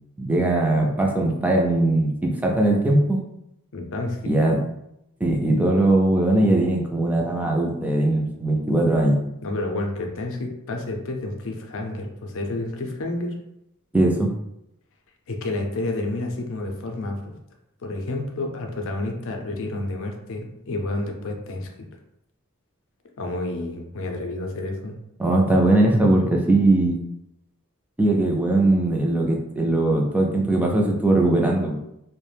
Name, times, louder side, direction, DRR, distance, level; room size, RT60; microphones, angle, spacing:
voice 1, 0.2-3.2 4.2-4.6 5.2-9.2 13.9-14.3 25.2-27.0 28.0-31.8, right 2 dB, 5° right, 0 dB, 0.4 m, -20 dB
voice 2, 3.7-4.3 9.4-13.4 15.3-17.3 17.8-21.7 23.2-25.0, left 2 dB, 60° left, 3 dB, 0.5 m, -30 dB
2.4 x 2.1 x 3.2 m, 0.82 s
head